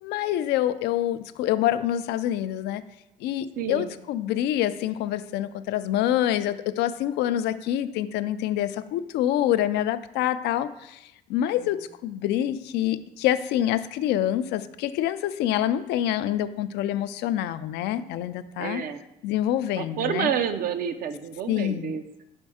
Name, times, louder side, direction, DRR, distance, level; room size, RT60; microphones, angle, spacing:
voice 1, 0.0-2.8 3.2-11.0 11.3-18.8 19.2-20.3 21.5-22.0, left 12 dB, 80° left, 12 dB, 0.4 m, -26 dB
voice 2, 3.6-3.9 11.6-11.8 18.6-19.0 19.8-22.0, right 8 dB, 60° right, 9 dB, 0.6 m, -29 dB
5.3 x 4.4 x 4.9 m, 0.87 s
cardioid pair, 110°, 17 cm